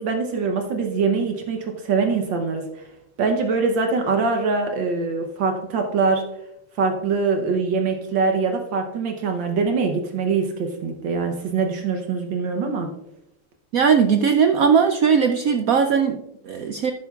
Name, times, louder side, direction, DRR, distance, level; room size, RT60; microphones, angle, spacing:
voice 1, 0.0-2.7 3.2-6.3 6.8-12.9, right 4 dB, 70° right, 4 dB, 1.6 m, -23 dB
voice 2, 13.7-16.9, right 6 dB, 90° right, 6 dB, 0.7 m, -19 dB
12.0 x 9.6 x 2.3 m, 0.86 s
omnidirectional pair, 2.2 m